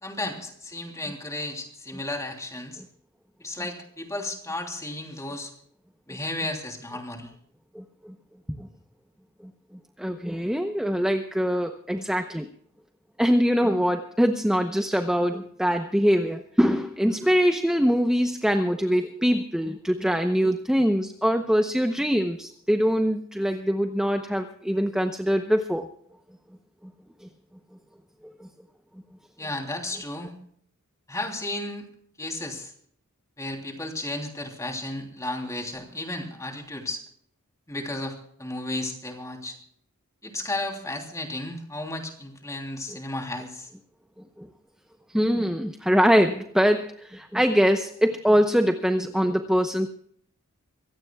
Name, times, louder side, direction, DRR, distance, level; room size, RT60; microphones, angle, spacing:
voice 1, 0.0-2.8 3.4-5.5 6.1-7.3 29.4-30.3 31.1-31.8 32.2-32.7 33.4-37.0 37.7-39.6 40.2-43.7, left 2 dB, 15° left, 2 dB, 3.2 m, -33 dB
voice 2, 10.0-12.5 13.2-25.9 27.2-27.3 28.4-28.5 44.4-44.5 45.1-49.9, equal, 5° right, 5 dB, 0.8 m, -23 dB
25.0 x 16.5 x 2.3 m, 0.65 s
head